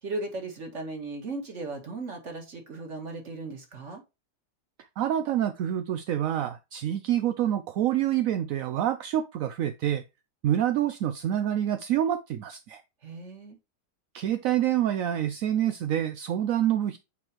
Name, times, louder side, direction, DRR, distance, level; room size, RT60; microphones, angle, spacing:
voice 1, 0.0-4.0 13.0-13.6, right 2 dB, 45° right, 2.1 m, -37 dB
voice 2, 5.0-10.0 10.4-12.8 14.1-17.0, right 11 dB, 70° right, 0.8 m, -27 dB
8.6 x 4.5 x 2.9 m
omnidirectional pair, 1.9 m